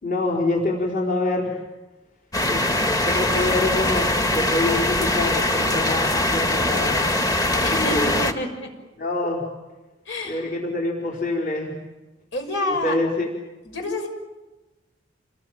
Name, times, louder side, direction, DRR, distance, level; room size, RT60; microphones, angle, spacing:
voice 1, 0.0-1.6 2.5-2.6 3.0-7.0 7.5-8.1 9.0-9.5 10.2-11.8 12.8-13.3, left 2 dB, 45° left, -2 dB, 4.3 m, -25 dB
sound 1, 2.3-8.3, left 1 dB, 20° left, 1.6 m, -22 dB
voice 2, 7.6-8.7 10.0-10.5 12.3-13.0 13.6-14.1, left 1 dB, 70° left, 4 dB, 6.4 m, -28 dB
28.5 x 21.5 x 9.0 m, 1.1 s
head